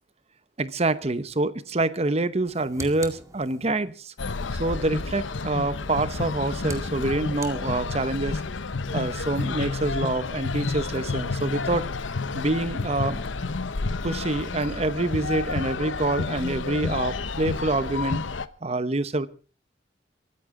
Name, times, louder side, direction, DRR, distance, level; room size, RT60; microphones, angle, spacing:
voice 1, 0.6-4.1 4.6-8.4 8.9-11.9 12.3-13.2 14.0-18.2 18.6-19.3, right 2 dB, 35° right, 14 dB, 0.9 m, -26 dB
sound 1, 2.3-4.0 6.0-8.3, right 2 dB, 15° right, 2.1 m, -43 dB
sound 2, 4.2-18.5, left 3 dB, 90° left, 0.8 m, -30 dB
23.5 x 14.0 x 3.8 m, 0.37 s
head